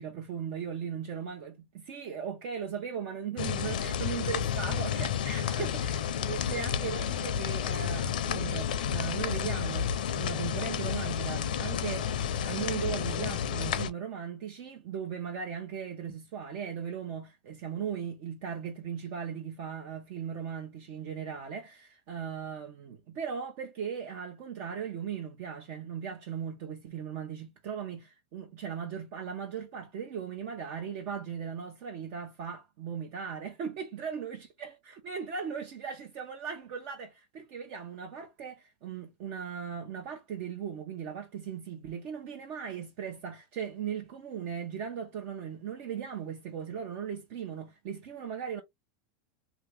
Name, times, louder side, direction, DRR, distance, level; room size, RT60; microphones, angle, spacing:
voice 1, 0.0-48.6, right 7 dB, 60° right, 0.9 m, -38 dB
sound 1, 3.4-13.9, left 8 dB, 80° left, 0.6 m, -31 dB
2.9 x 2.7 x 3.5 m
hypercardioid pair, 110°, 5 cm